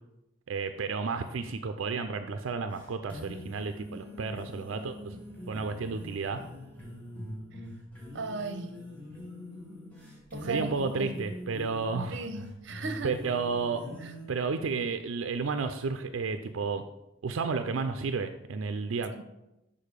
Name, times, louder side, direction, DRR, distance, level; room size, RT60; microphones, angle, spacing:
voice 1, 0.5-5.2 5.5-6.4 10.4-12.2 13.0-13.8 14.3-16.8 17.2-19.1, right 4 dB, 90° right, 0.4 m, -32 dB
sound 1, 1.0-14.3, left 1 dB, 10° left, 1.9 m, -44 dB
voice 2, 8.1-8.8 10.3-11.1 12.1-13.1 14.0-14.1 19.1-19.2, right 3 dB, 65° right, 0.7 m, -37 dB
6.5 x 5.3 x 5.1 m
head